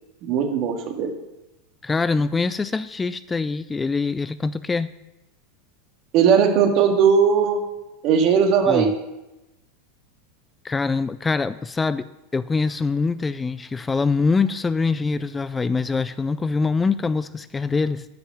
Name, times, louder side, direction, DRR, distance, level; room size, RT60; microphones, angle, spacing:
voice 1, 0.2-1.1 6.1-7.6 8.0-8.9, right 7 dB, 50° right, 4 dB, 1.9 m, -18 dB
voice 2, 1.8-4.9 8.7-8.9 10.6-12.1 12.3-18.1, left 4 dB, 15° left, 15 dB, 0.3 m, -24 dB
10.5 x 5.8 x 7.2 m, 0.97 s
hypercardioid pair, 110°, 0 cm